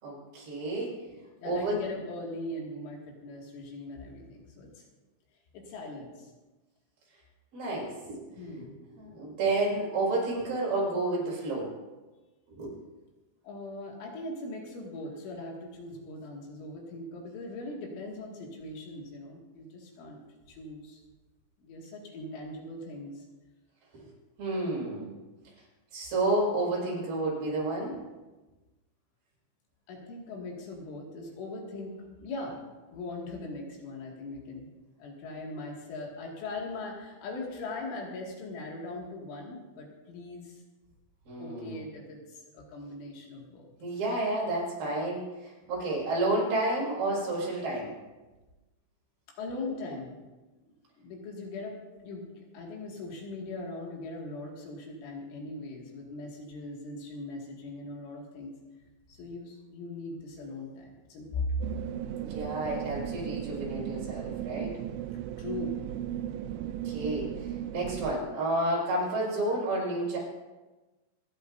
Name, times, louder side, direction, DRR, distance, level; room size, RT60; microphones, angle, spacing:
voice 1, 0.0-1.0 1.4-1.8 7.5-8.7 9.0-11.7 12.5-12.7 23.9-24.1 24.4-25.2 25.9-28.0 41.3-41.8 43.8-47.9 62.2-64.8 66.5-70.2, right 2 dB, 55° right, -5 dB, 7.1 m, -31 dB
voice 2, 1.1-4.7 5.5-6.1 8.4-8.8 13.4-20.2 20.5-21.0 21.6-23.2 29.9-32.6 32.9-34.7 35.0-40.6 41.4-43.7 49.4-50.2 51.0-51.8 52.0-58.5 59.1-61.6 65.4-65.8, left 2 dB, 80° left, -1 dB, 4.5 m, -40 dB
sound 1, 61.6-68.2, right 11 dB, 85° right, 2.5 m, -36 dB
27.0 x 9.9 x 2.6 m, 1.2 s
omnidirectional pair, 5.5 m